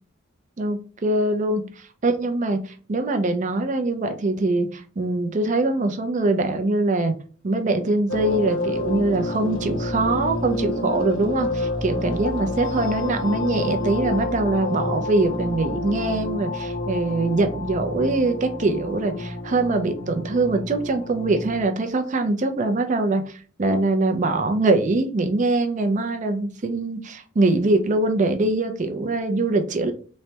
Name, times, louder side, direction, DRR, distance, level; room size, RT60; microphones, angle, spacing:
voice 1, 0.6-7.1 7.4-29.9, right 2 dB, 35° right, 6 dB, 0.4 m, -23 dB
sound 1, 8.1-21.7, left 2 dB, 60° left, 0.7 m, -29 dB
3.1 x 2.2 x 2.8 m, 0.40 s
head